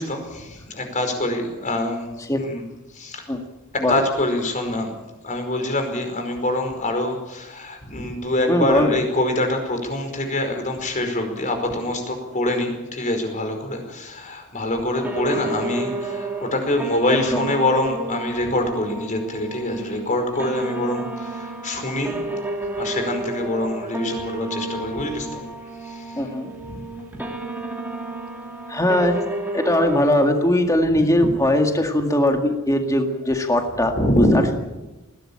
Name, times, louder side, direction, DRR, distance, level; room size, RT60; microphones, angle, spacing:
voice 1, 0.0-2.1 2.4-2.6 2.9-3.2 3.9-4.9 5.2-22.2 22.8-25.4 25.8-26.2 26.7-26.8 31.2-31.3 34.0-34.4, left 1 dB, 35° left, 5 dB, 5.0 m, -25 dB
voice 2, 8.5-9.0 17.1-17.5 26.2-26.5 28.7-29.3 29.5-34.5, left 1 dB, 15° left, 4 dB, 1.9 m, -20 dB
sound 1, 14.9-30.1, right 2 dB, 10° right, 2.8 m, -31 dB
20.5 x 17.0 x 8.7 m, 1.1 s
head